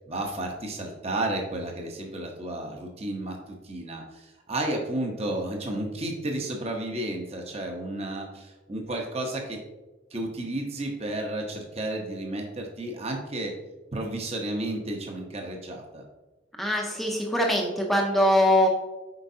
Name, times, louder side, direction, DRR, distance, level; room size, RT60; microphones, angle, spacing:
voice 1, 0.1-9.6 10.1-13.5 13.9-16.0, right 1 dB, 30° right, 2 dB, 0.9 m, -32 dB
voice 2, 16.6-18.7, equal, ahead, 0 dB, 0.6 m, -22 dB
7.9 x 5.2 x 2.8 m, 1.1 s
head